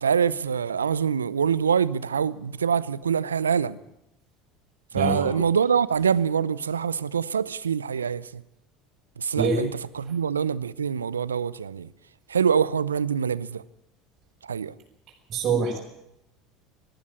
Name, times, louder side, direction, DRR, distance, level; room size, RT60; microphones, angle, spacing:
voice 1, 0.0-3.8 4.9-8.3 9.2-9.7 10.0-11.9 12.3-13.6 14.5-14.7, right 7 dB, 85° right, 0.6 m, -24 dB
voice 2, 4.9-5.3 9.3-9.6 10.0-10.1 15.3-15.8, right 4 dB, 45° right, 5.5 m, -25 dB
19.5 x 14.5 x 9.9 m
hypercardioid pair, 70°, 0 cm